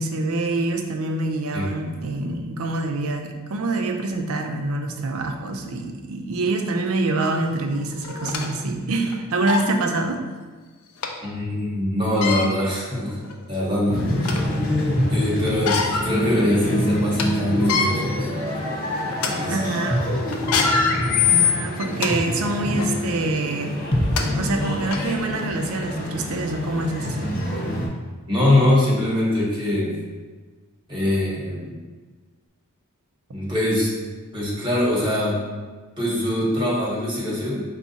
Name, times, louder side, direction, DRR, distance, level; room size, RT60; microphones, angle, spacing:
voice 1, 0.0-10.2 19.5-20.1 21.2-23.8 24.3-27.3, right 2 dB, 70° right, 4 dB, 0.5 m, -26 dB
sound 1, 7.3-7.4 8.0-8.5 9.1-9.2 9.5-9.7 11.0-11.1 12.1-12.5 13.2-13.3 13.8-14.5 15.5-16.1 16.5-16.6 17.0-17.2 17.6-17.9 18.5-18.7 19.1-19.3 20.3-22.1 22.7-22.9 23.8-23.9 24.2-24.3 24.9-25.0, left 6 dB, 85° left, 0.5 m, -23 dB
voice 2, 11.2-13.2 13.5-14.0 15.1-18.3 19.2-19.7 28.3-29.9 30.9-31.7 33.3-33.9 34.3-35.4 36.0-37.6, left 1 dB, 20° right, -5 dB, 1.1 m, -23 dB
sound 2, 13.9-27.9, equal, 40° left, 0.8 m, -26 dB
sound 3, 23.9-27.9 28.2-28.3, left 1 dB, 25° left, 0.5 m, -30 dB
4.8 x 2.4 x 4.0 m, 1.4 s
head